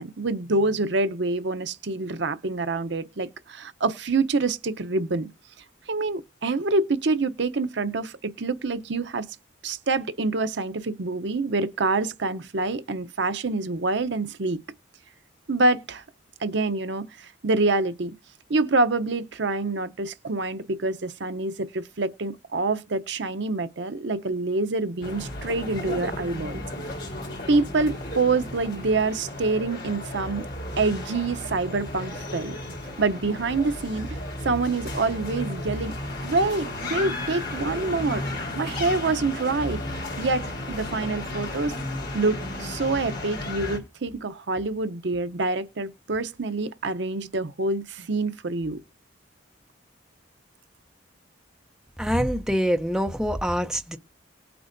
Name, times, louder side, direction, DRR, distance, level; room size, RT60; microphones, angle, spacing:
voice 1, 0.0-5.3 5.9-9.3 9.6-14.6 15.5-16.0 16.4-18.1 18.5-26.6 27.5-30.5 30.8-32.6 33.0-34.2 34.4-36.0 36.2-38.2 38.5-39.8 40.2-41.7 42.1-48.8, right 3 dB, 65° right, 0.7 m, -26 dB
sound 1, 25.0-43.8, left 1 dB, 55° left, 4.0 m, -34 dB
voice 2, 52.0-54.0, equal, 5° right, 0.5 m, -25 dB
19.5 x 7.7 x 2.6 m
head